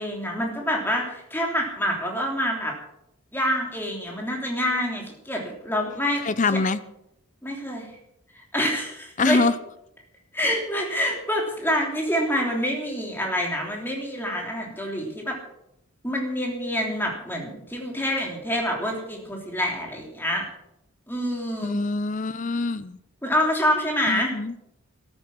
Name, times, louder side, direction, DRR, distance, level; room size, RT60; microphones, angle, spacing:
voice 1, 0.0-2.7 3.3-6.2 6.5-6.6 7.4-7.9 8.3-9.4 10.3-15.4 16.0-20.4 21.1-21.8 23.2-24.3, equal, 10° left, 0 dB, 3.2 m, -27 dB
voice 2, 6.2-6.8 9.2-9.5 21.6-23.0 24.1-24.5, left 3 dB, 35° left, 15 dB, 0.6 m, -24 dB
13.5 x 13.5 x 6.2 m, 0.80 s
head